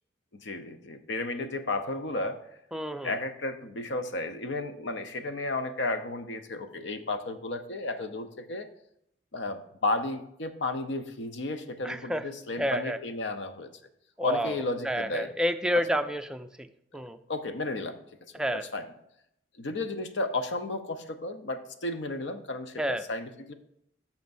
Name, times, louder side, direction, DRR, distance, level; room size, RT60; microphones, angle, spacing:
voice 1, 0.3-2.4 3.0-8.7 9.3-13.7 14.2-15.3 15.7-15.8 16.9-17.0 17.3-18.0 18.5-18.9 19.6-23.5, left 2 dB, 75° left, 9 dB, 0.7 m, -33 dB
voice 2, 2.7-3.1 11.8-12.2 12.6-13.0 14.2-16.7 16.9-17.2 18.3-18.6 22.8-23.0, equal, 5° right, 8 dB, 0.4 m, -30 dB
13.5 x 6.0 x 2.6 m, 0.76 s
head